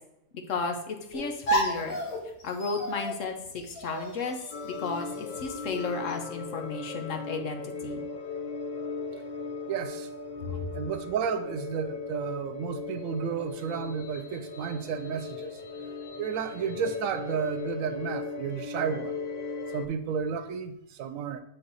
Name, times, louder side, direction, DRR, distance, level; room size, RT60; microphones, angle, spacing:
voice 1, 0.5-2.0 2.4-3.3 3.7-4.4 4.6-8.0 10.5-10.6, left 4 dB, 70° left, 1.2 m, -33 dB
sound 1, 1.1-6.1, right 1 dB, 90° left, 1.8 m, -33 dB
sound 2, 4.5-19.9, left 4 dB, 50° left, 0.5 m, -38 dB
voice 2, 9.7-10.1 10.7-15.6 16.2-19.1 19.7-21.4, right 7 dB, 90° right, 1.0 m, -32 dB
7.8 x 3.8 x 4.0 m
omnidirectional pair, 1.4 m